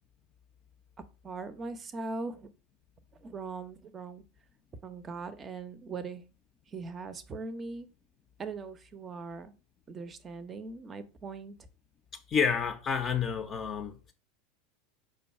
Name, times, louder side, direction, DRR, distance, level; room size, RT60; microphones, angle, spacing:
voice 1, 1.2-2.5 3.2-4.2 4.8-6.2 6.7-7.9 8.4-9.5 9.9-11.6, right 4 dB, 25° right, 0.5 m, -40 dB
voice 2, 12.3-14.1, left 6 dB, 30° left, 0.5 m, -29 dB
5.1 x 2.2 x 4.3 m
figure-of-eight pair, 80°, 0 cm